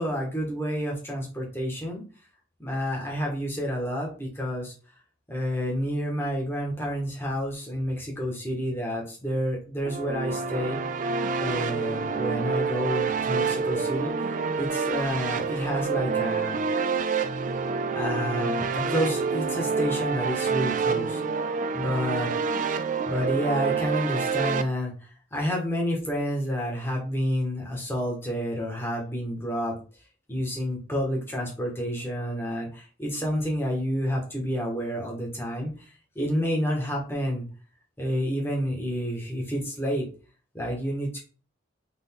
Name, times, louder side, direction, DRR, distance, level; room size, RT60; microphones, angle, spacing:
voice 1, 0.0-2.0 2.6-4.7 5.3-10.8 11.4-14.1 14.6-16.6 17.9-21.2 21.7-22.3 23.0-29.7 30.3-37.4 38.0-40.0 40.5-41.2, equal, 10° left, -2 dB, 1.5 m, -29 dB
sound 1, 9.8-24.6, right 5 dB, 40° right, 0.3 m, -27 dB
3.9 x 3.6 x 3.7 m, 0.37 s
head